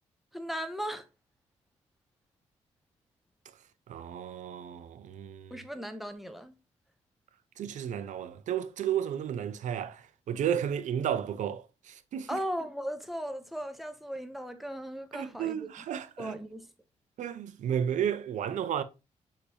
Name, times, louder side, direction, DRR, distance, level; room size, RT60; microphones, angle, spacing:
voice 1, 0.3-1.1 5.5-6.5 12.3-15.7 16.2-16.7, equal, ahead, 0.5 m, -37 dB
voice 2, 3.9-5.6 7.6-12.4 15.1-16.4 17.2-18.8, right 9 dB, 70° right, 0.5 m, -33 dB
6.5 x 2.7 x 2.8 m
wide cardioid pair, 145°, 13 cm